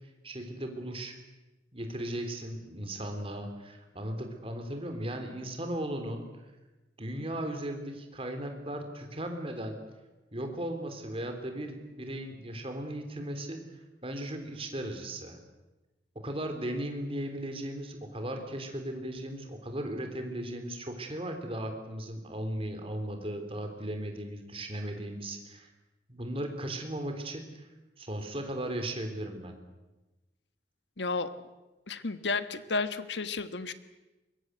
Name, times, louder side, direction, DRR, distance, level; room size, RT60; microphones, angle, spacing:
voice 1, 0.2-1.1 1.7-6.2 7.0-9.8 10.3-13.6 14.0-15.4 16.2-25.7 26.1-27.7 28.0-29.6, right 1 dB, 35° right, 5 dB, 3.6 m, -37 dB
voice 2, 31.0-31.3 31.9-33.7, left 3 dB, 90° left, 11 dB, 1.5 m, -32 dB
24.0 x 22.0 x 8.1 m, 1.1 s
head